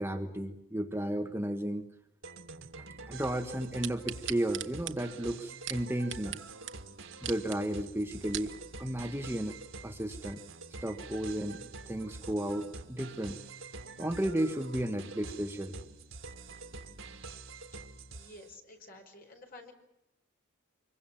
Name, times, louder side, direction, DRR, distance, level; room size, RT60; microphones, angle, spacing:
voice 1, 0.0-1.9 3.1-6.4 7.2-8.5 8.8-9.6 9.8-10.4 10.8-13.4 14.0-15.8, right 1 dB, 10° right, 5 dB, 1.5 m, -33 dB
sound 1, 2.2-18.5, right 3 dB, 85° right, 2.1 m, -46 dB
sound 2, 3.8-6.4 6.7-6.8 7.1-7.6 8.1-8.5 9.1-9.2, right 12 dB, 65° right, 1.3 m, -39 dB
voice 2, 18.1-19.7, left 2 dB, 45° left, 3 dB, 5.3 m, -51 dB
25.5 x 23.5 x 7.4 m, 0.88 s
head